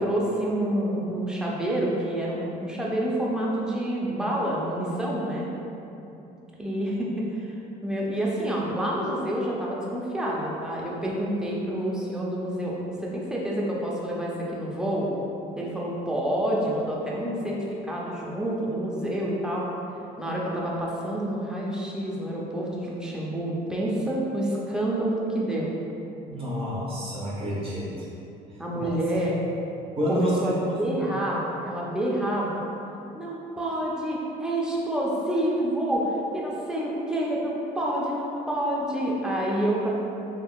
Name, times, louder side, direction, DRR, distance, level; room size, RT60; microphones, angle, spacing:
voice 1, 0.0-5.5 6.6-12.8 13.0-15.1 15.6-19.6 20.2-25.7 28.6-29.4 30.1-30.5 30.8-32.6 33.1-39.9, right 1 dB, 5° right, -4 dB, 0.6 m, -28 dB
voice 2, 26.3-28.1 28.8-28.9 30.0-31.1, equal, 35° right, -8 dB, 1.0 m, -29 dB
3.7 x 2.9 x 2.3 m, 2.8 s
cardioid pair, 110°, 17 cm